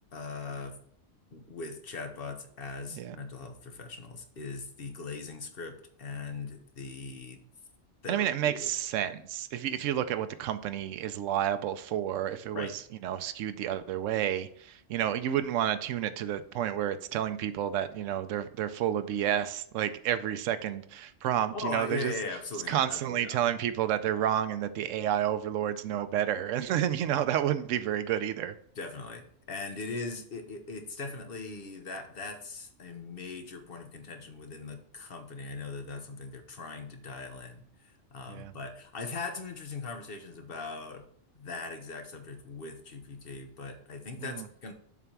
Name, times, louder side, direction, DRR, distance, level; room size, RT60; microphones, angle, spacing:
voice 1, 0.1-0.8 1.3-7.4 8.0-8.7 12.5-12.7 21.5-23.4 28.8-41.1 41.3-44.7, left 3 dB, 50° left, 6 dB, 1.1 m, -40 dB
voice 2, 8.1-22.1 22.7-28.6 38.3-38.5 44.2-44.5, right 10 dB, 85° right, 11 dB, 0.9 m, -30 dB
7.2 x 3.4 x 5.9 m, 0.62 s
omnidirectional pair, 1.3 m